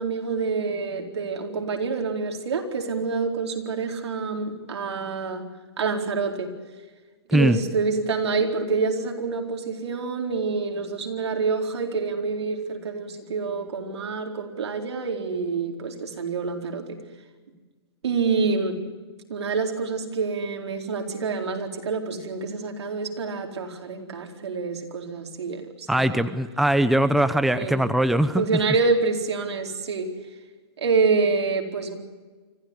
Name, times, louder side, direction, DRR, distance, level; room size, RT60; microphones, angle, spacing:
voice 1, 0.0-5.5 5.8-6.5 7.3-17.0 18.0-18.8 19.3-26.2 27.5-27.8 28.3-30.1 30.8-32.0, right 4 dB, 80° right, 3 dB, 4.3 m, -27 dB
voice 2, 25.9-28.4, right 1 dB, ahead, 11 dB, 0.8 m, -21 dB
25.5 x 15.5 x 9.6 m, 1.4 s
hypercardioid pair, 145°, 14 cm